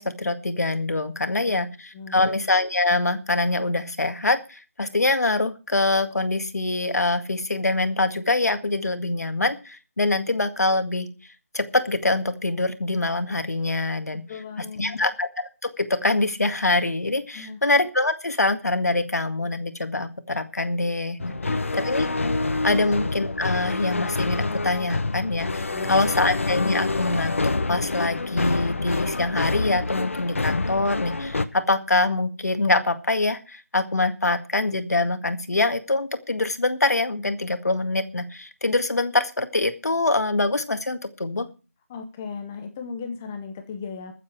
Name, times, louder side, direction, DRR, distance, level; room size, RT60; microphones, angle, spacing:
voice 1, 0.0-11.1 11.5-14.2 14.8-22.1 22.6-27.4 27.7-41.5, left 2 dB, 90° left, 8 dB, 1.9 m, -24 dB
voice 2, 1.9-2.3 14.1-15.0 17.3-17.6 21.3-21.8 22.7-22.8 25.7-26.2 41.9-44.1, left 5 dB, 10° left, 6 dB, 0.6 m, -37 dB
sound 1, 21.2-31.5, left 3 dB, 55° left, 1.1 m, -27 dB
21.5 x 7.6 x 4.6 m, 0.34 s
figure-of-eight pair, 175°, 8 cm